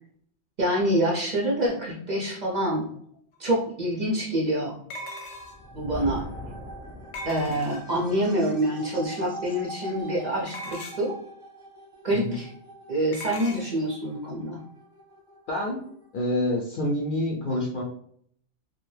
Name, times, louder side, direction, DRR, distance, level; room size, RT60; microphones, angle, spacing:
voice 1, 0.6-2.9 3.4-4.8 5.7-6.3 7.3-11.2 12.0-12.5 12.9-14.6, right 1 dB, 50° right, -4 dB, 0.6 m, -26 dB
sound 1, 3.3-3.4 4.9-5.7 7.1-8.0 10.5-11.2 13.1-13.7, left 1 dB, 85° left, 0.9 m, -39 dB
sound 2, 4.9-16.2, right 1 dB, 25° right, 0.9 m, -45 dB
Thunder, 5.4-7.8, left 2 dB, 5° right, 0.7 m, -39 dB
voice 2, 15.5-15.8 16.1-17.8, left 1 dB, 60° left, -1 dB, 0.6 m, -27 dB
2.6 x 2.2 x 3.2 m, 0.63 s
omnidirectional pair, 1.2 m